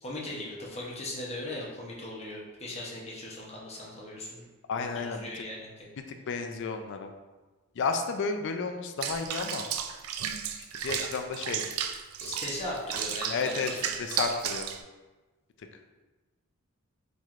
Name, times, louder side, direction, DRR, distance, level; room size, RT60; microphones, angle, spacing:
voice 1, 0.0-4.4 4.8-5.9 11.3-11.4 12.2-13.9, left 1 dB, 30° left, -3 dB, 0.8 m, -39 dB
voice 2, 4.7-5.3 6.3-7.1 7.8-9.7 10.8-11.6 13.3-13.7 14.0-14.7, left 4 dB, 60° left, 6 dB, 0.4 m, -32 dB
Water / Bathtub (filling or washing), 9.0-14.8, right 8 dB, 75° right, 0.3 m, -34 dB
4.4 x 3.0 x 2.4 m, 1.2 s
head